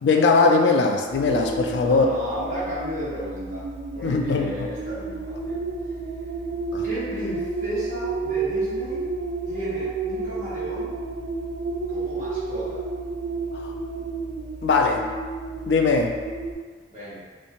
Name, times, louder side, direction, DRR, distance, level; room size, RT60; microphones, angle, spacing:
voice 1, 0.0-2.1 4.0-4.7 6.7-6.8 13.5-13.7 14.6-15.1 15.7-16.2, left 4 dB, 80° left, 3 dB, 0.3 m, -20 dB
sound 1, 1.1-16.6, right 3 dB, 75° right, 0.4 m, -31 dB
voice 2, 1.7-3.7 3.9-5.6 6.8-9.1 9.5-10.9 11.9-12.8 16.9-17.2, equal, 45° right, -9 dB, 0.9 m, -34 dB
2.5 x 2.1 x 2.8 m, 1.5 s
head